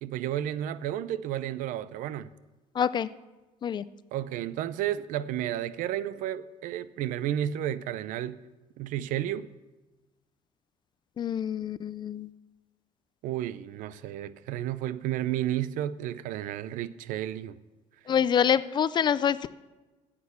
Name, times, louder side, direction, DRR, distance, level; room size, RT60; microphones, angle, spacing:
voice 1, 0.0-2.3 4.1-8.4 8.8-9.5 13.2-17.6, right 12 dB, 75° right, 0.6 m, -32 dB
voice 2, 2.7-3.1 3.6-3.9 11.2-12.3 18.1-19.5, left 8 dB, 35° left, 0.4 m, -26 dB
9.7 x 8.6 x 8.2 m
cardioid pair, 135°, 14 cm